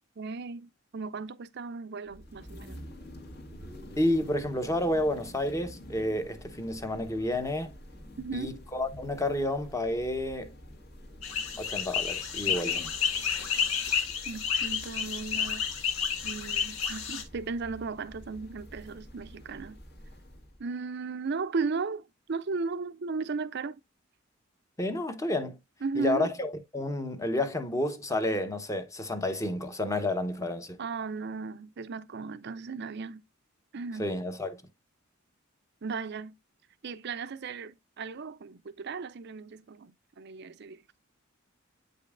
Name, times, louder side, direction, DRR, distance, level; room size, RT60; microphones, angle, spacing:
voice 1, 0.2-2.9 8.2-8.6 14.3-15.7 16.2-19.8 20.6-23.8 25.8-26.3 30.8-33.2 33.7-34.1 35.8-36.4 36.8-40.8, right 4 dB, 55° right, 0.5 m, -36 dB
sound 1, 2.1-20.6, equal, 50° left, 1.6 m, -48 dB
voice 2, 4.0-7.7 8.3-10.5 11.6-12.8 24.8-25.6 26.0-30.8 34.0-34.6, left 1 dB, 15° left, 0.9 m, -30 dB
sound 2, 11.2-17.2, left 7 dB, 85° left, 1.6 m, -30 dB
8.6 x 5.3 x 2.4 m
head